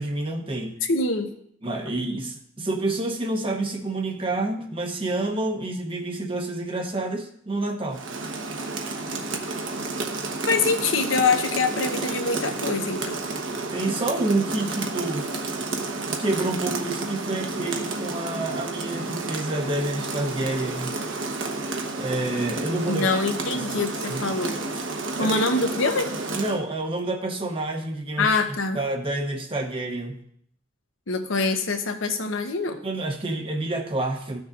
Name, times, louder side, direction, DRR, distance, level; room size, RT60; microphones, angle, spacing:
voice 1, 0.0-0.8 1.6-8.0 13.7-15.3 16.1-21.0 22.0-23.2 24.1-24.2 24.7-24.8 25.2-25.4 26.4-28.3 28.7-30.1 32.8-34.4, right 2 dB, 25° right, 3 dB, 0.7 m, -28 dB
voice 2, 0.8-1.3 10.5-13.2 22.9-24.6 25.2-26.1 28.2-28.8 31.1-32.8, left 3 dB, 85° left, 6 dB, 0.9 m, -24 dB
Rain, 7.9-26.6, right 3 dB, 80° right, 1.1 m, -31 dB
13.5 x 6.4 x 2.5 m, 0.67 s
head